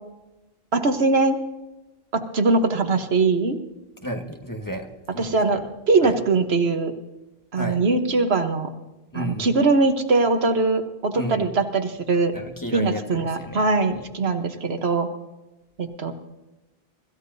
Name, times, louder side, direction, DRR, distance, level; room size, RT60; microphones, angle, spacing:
voice 1, 0.7-1.4 2.1-3.6 5.2-5.6 5.9-6.9 7.5-8.7 9.1-12.3 12.7-15.1 15.8-16.1, right 3 dB, 80° right, 6 dB, 1.4 m, -21 dB
voice 2, 4.0-5.7 6.0-6.2 7.5-7.8 9.1-9.6 11.1-11.5 12.3-14.0, equal, 20° left, 2 dB, 1.4 m, -33 dB
25.0 x 14.5 x 2.7 m, 1.0 s
omnidirectional pair, 1.0 m